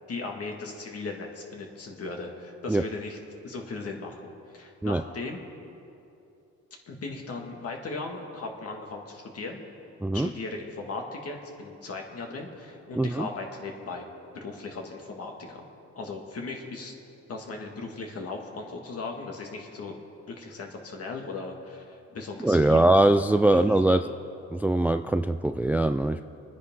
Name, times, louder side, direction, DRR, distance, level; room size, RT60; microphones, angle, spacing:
voice 1, 0.1-3.2 3.4-5.4 6.9-9.6 10.1-14.1 14.3-15.6 16.0-16.9 17.3-20.0 20.3-22.9 23.5-24.0, left 3 dB, 50° left, 1 dB, 2.2 m, -37 dB
voice 2, 13.0-13.3 22.4-24.0 24.5-26.2, right 2 dB, 5° right, 9 dB, 0.3 m, -22 dB
27.5 x 9.9 x 3.8 m, 2.7 s
cardioid pair, 90°, 30 cm